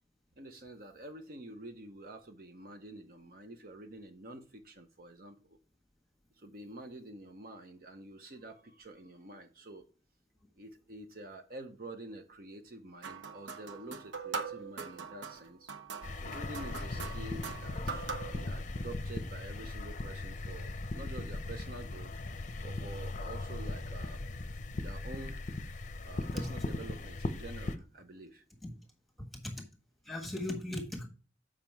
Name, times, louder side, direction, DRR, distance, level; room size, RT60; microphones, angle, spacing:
voice 1, 0.4-5.6 6.3-9.8 10.6-15.7 16.1-22.2 22.6-24.2 24.8-25.4 26.0-28.4, right 2 dB, 50° right, 0.7 m, -48 dB
sound 1, 13.0-18.4, right 5 dB, 90° right, 0.9 m, -42 dB
sound 2, 16.0-27.8, left 2 dB, 40° left, 0.6 m, -38 dB
voice 2, 29.3-29.6 30.0-31.1, left 1 dB, ahead, 1.4 m, -38 dB
7.4 x 5.0 x 4.5 m
head